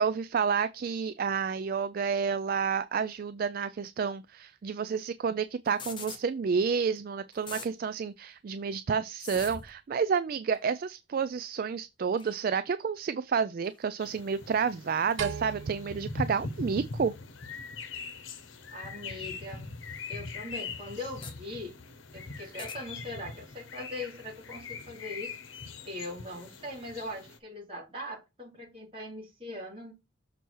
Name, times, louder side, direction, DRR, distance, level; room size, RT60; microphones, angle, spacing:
voice 1, 0.0-17.1, right 6 dB, 50° right, 0.3 m, -30 dB
sound 1, 5.6-6.2 7.0-7.1 7.3-7.7 9.2-9.7 10.5-10.7 12.2-12.4 13.6-13.8 15.1-15.2 16.5-16.6 18.0-18.1 19.5-19.6 19.9-20.0 21.0-21.3 22.4-22.8, left 5 dB, 25° left, 1.0 m, -43 dB
sound 2, 14.0-27.4, left 3 dB, 90° left, 0.9 m, -41 dB
sound 3, 15.2-17.6, right 6 dB, 85° right, 0.9 m, -40 dB
voice 2, 18.7-19.7 20.1-21.7 22.1-25.4 25.8-29.9, left 1 dB, 30° right, 4.2 m, -41 dB
6.7 x 4.5 x 4.6 m
head